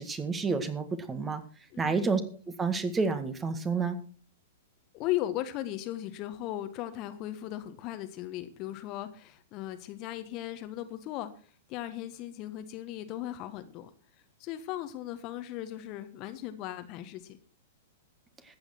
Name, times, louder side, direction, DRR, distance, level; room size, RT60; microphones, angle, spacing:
voice 1, 0.0-1.4 1.8-2.2 2.6-4.0, right 4 dB, 15° right, 10 dB, 1.9 m, -29 dB
voice 2, 1.7-2.1 4.9-13.9 14.4-17.4, left 13 dB, 40° left, 10 dB, 1.4 m, -37 dB
14.5 x 8.8 x 6.0 m, 0.41 s
figure-of-eight pair, 105°, 0 cm